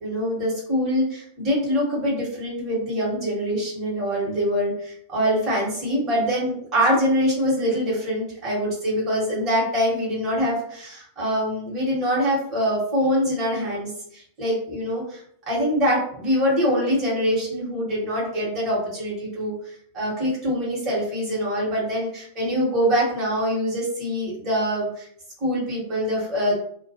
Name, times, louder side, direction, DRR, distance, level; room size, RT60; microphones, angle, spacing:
voice 1, 0.0-15.2 15.5-25.1 25.4-26.5, equal, 30° right, -5 dB, 1.1 m, -24 dB
2.2 x 2.1 x 2.8 m, 0.64 s
figure-of-eight pair, 90°, 0 cm